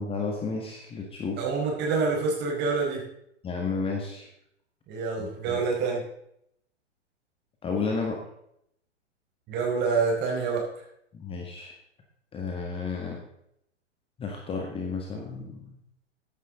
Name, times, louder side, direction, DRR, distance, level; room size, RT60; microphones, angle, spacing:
voice 1, 0.0-1.4 3.4-4.3 5.2-5.6 7.6-8.2 11.1-11.7 12.3-13.2 14.2-15.8, left 4 dB, 15° left, 1 dB, 1.8 m, -32 dB
voice 2, 1.4-3.0 4.9-6.0 9.5-10.6, right 4 dB, 30° right, -1 dB, 4.8 m, -27 dB
15.0 x 10.0 x 3.9 m, 0.74 s
figure-of-eight pair, 110°, 34 cm